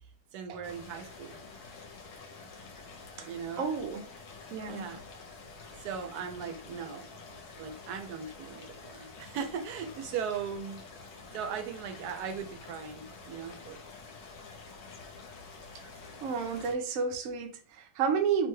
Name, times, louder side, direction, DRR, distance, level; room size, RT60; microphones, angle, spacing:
voice 1, 0.3-1.4 3.2-3.7 4.7-5.0 5.8-7.1 7.6-10.8 11.3-13.8, right 7 dB, 90° right, 6 dB, 1.1 m, -38 dB
sound 1, 0.6-16.8, left 4 dB, 75° left, 1.2 m, -48 dB
voice 2, 3.6-4.0 4.5-5.0 16.2-18.5, right 6 dB, 70° right, 4 dB, 1.0 m, -31 dB
3.0 x 2.2 x 3.1 m, 0.37 s
omnidirectional pair, 1.6 m